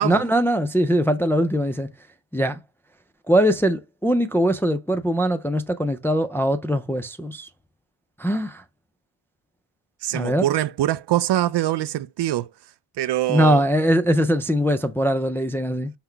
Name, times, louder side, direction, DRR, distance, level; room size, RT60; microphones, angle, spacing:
voice 1, 0.0-1.9 2.3-2.6 3.3-7.5 8.2-8.6 10.1-10.4 13.3-15.9, equal, 5° left, 0.3 m, -21 dB
voice 2, 10.0-12.5 13.0-13.6, right 13 dB, 60° right, 0.5 m, -23 dB
5.7 x 2.0 x 4.4 m
cardioid pair, 90°, 46 cm